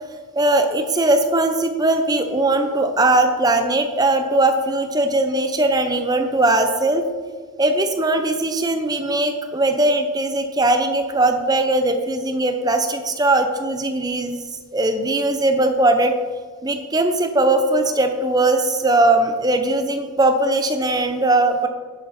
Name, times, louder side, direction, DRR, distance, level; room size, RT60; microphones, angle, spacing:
voice 1, 0.4-7.1 7.6-14.4 14.7-16.1 16.6-21.7, right 2 dB, 20° right, 7 dB, 0.7 m, -19 dB
10.5 x 8.1 x 4.3 m, 1.5 s
head